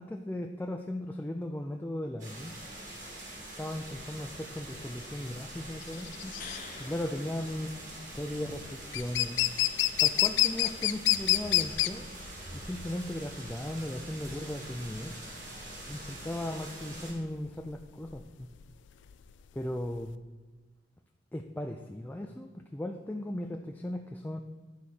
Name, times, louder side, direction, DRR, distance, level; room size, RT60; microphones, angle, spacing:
voice 1, 0.0-2.5 3.6-6.4 6.8-7.7 8.1-9.4 10.0-12.1 12.5-15.2 15.9-18.5 19.5-20.1 21.3-24.4, left 1 dB, 10° left, 3 dB, 0.4 m, -37 dB
sound 1, 2.2-17.1, right 1 dB, 45° right, 2.9 m, -45 dB
sound 2, 3.8-20.1, left 15 dB, 80° left, 0.4 m, -30 dB
sound 3, 6.0-8.3 11.7-11.8, left 5 dB, 50° left, 1.0 m, -48 dB
10.5 x 4.1 x 6.4 m, 1.3 s
head